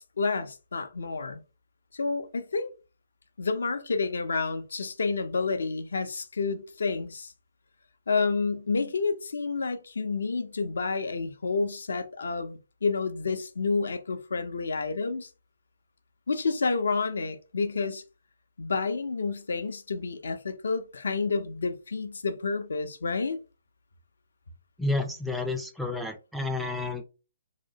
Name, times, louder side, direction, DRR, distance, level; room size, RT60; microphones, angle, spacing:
voice 1, 0.0-1.4 1.9-2.7 3.4-7.3 8.1-15.3 16.3-18.0 18.6-23.4, left 4 dB, 65° left, 0.4 m, -29 dB
voice 2, 24.8-27.0, left 2 dB, ahead, 0.3 m, -30 dB
2.7 x 2.0 x 2.7 m
figure-of-eight pair, 130°, 0 cm